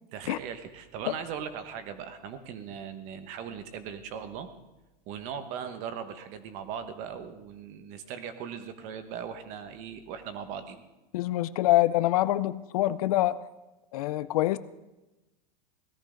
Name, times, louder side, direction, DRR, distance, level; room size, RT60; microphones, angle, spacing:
voice 1, 0.1-4.5 5.1-10.8, right 7 dB, 35° right, 10 dB, 1.2 m, -39 dB
voice 2, 11.1-13.4 13.9-14.6, left 15 dB, 65° left, 14 dB, 0.6 m, -25 dB
17.5 x 13.5 x 5.1 m, 1.0 s
supercardioid pair, 180°, 21 cm